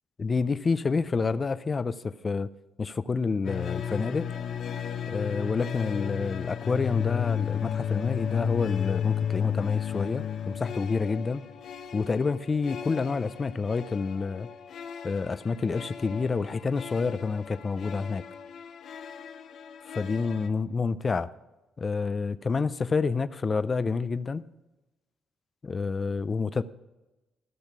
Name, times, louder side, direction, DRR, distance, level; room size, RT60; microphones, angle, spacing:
voice 1, 0.2-2.5 2.8-4.3 5.1-11.5 11.9-14.5 15.0-18.2 20.0-21.3 21.8-24.4 25.6-26.6, left 4 dB, 35° left, 14 dB, 0.4 m, -28 dB
sound 1, 3.4-20.5, left 8 dB, 65° left, 0.8 m, -34 dB
14.0 x 6.5 x 6.0 m, 1.0 s
cardioid pair, 90°, 0 cm